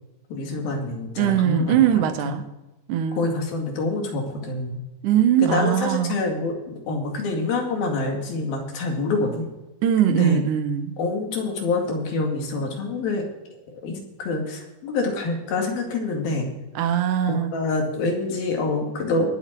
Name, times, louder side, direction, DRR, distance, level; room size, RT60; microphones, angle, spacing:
voice 1, 0.3-2.3 3.2-4.8 5.4-9.5 10.0-10.4 11.0-13.2 13.7-16.5 17.3-19.3, left 3 dB, 80° left, 1 dB, 4.2 m, -26 dB
voice 2, 1.2-2.5 2.9-3.2 5.0-6.2 9.8-11.0 16.8-17.5, right 10 dB, 70° right, 8 dB, 2.5 m, -21 dB
21.5 x 7.5 x 4.6 m, 1.0 s
omnidirectional pair, 4.2 m